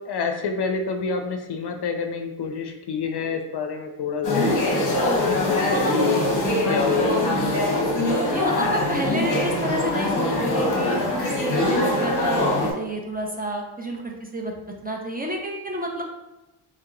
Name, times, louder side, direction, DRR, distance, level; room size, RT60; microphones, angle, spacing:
voice 1, 0.1-7.4, left 5 dB, 55° left, 5 dB, 0.6 m, -28 dB
sound 1, 4.2-12.7, left 1 dB, 40° left, 0.9 m, -23 dB
voice 2, 8.2-14.5 14.8-16.0, right 1 dB, 20° right, 0 dB, 0.5 m, -30 dB
3.2 x 2.8 x 3.7 m, 0.98 s
cardioid pair, 95°, 49 cm